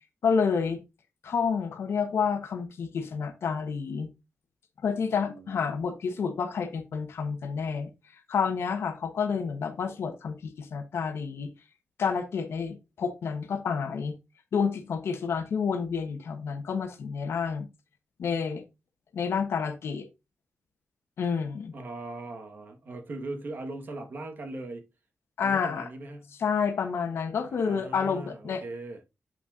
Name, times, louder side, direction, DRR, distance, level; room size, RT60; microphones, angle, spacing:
voice 1, 0.2-0.8 1.2-4.1 4.8-7.9 8.3-11.5 12.0-14.1 14.5-17.6 18.2-18.6 19.1-20.1 21.2-21.7 25.4-25.9 26.4-28.6, left 6 dB, 85° left, 1.1 m, -29 dB
voice 2, 5.1-5.7 21.7-24.8 25.4-26.4 27.5-29.0, right 2 dB, 50° right, 1.6 m, -40 dB
7.8 x 6.1 x 2.6 m
wide cardioid pair, 150°, 4 cm